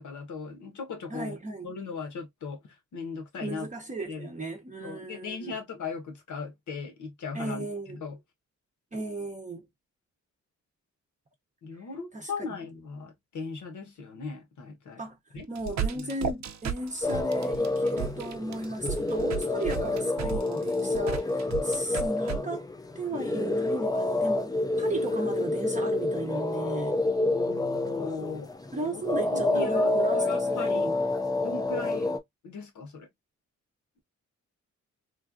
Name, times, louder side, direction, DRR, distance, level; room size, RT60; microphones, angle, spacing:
voice 1, 0.0-1.4 1.6-2.6 2.9-3.7 4.1-4.3 4.8-8.2 11.6-15.0 15.3-16.1 27.3-28.5 28.9-29.0 29.3-30.9 31.4-33.1, left 4 dB, 75° left, 1.2 m, -38 dB
voice 2, 1.1-1.7 3.4-5.5 7.3-8.0 8.9-9.7 12.1-12.3 15.0-15.2 15.5-22.7 22.9-27.0 28.7-31.0, right 2 dB, 25° right, 0.7 m, -35 dB
sound 1, 15.4-22.4, right 8 dB, 65° right, 0.5 m, -34 dB
sound 2, 17.0-32.2, left 2 dB, 15° left, 0.4 m, -28 dB
3.2 x 2.4 x 2.5 m
cardioid pair, 105°, 30 cm